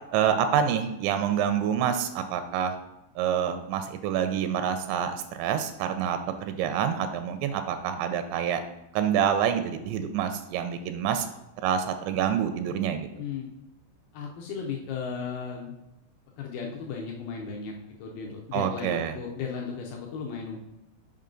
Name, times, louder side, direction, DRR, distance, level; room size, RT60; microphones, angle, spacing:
voice 1, 0.1-2.7 3.2-8.6 8.9-11.3 11.6-13.1 18.5-19.1, right 8 dB, 85° right, 8 dB, 2.8 m, -27 dB
voice 2, 13.2-13.5 14.1-15.7 16.4-17.7 18.0-20.6, left 6 dB, 80° left, 0 dB, 2.2 m, -35 dB
6.7 x 5.3 x 3.7 m, 0.95 s
omnidirectional pair, 5.0 m